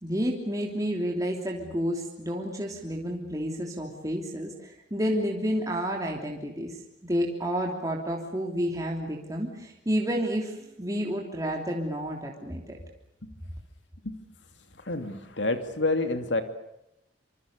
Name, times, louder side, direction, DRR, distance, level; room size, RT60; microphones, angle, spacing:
voice 1, 0.0-12.8, equal, 20° right, 0 dB, 3.2 m, -30 dB
voice 2, 14.9-16.4, left 2 dB, 75° left, 8 dB, 2.7 m, -28 dB
26.5 x 26.0 x 6.8 m, 0.84 s
head